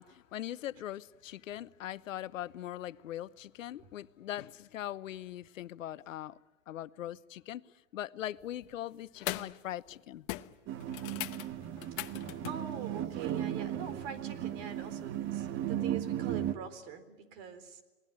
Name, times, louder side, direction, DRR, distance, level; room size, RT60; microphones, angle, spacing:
voice 1, 0.0-6.4 6.7-7.6 7.9-10.2, left 12 dB, 80° left, 1.0 m, -41 dB
sound 1, 8.4-8.7 9.1-9.6 9.9-10.0 10.3-12.7 14.7-14.8, left 18 dB, 40° left, 1.1 m, -40 dB
sound 2, 10.7-16.5, right 11 dB, 30° right, 1.3 m, -36 dB
voice 2, 12.5-17.8, right 7 dB, 50° right, 4.0 m, -43 dB
27.5 x 19.0 x 10.0 m
hypercardioid pair, 125°, 39 cm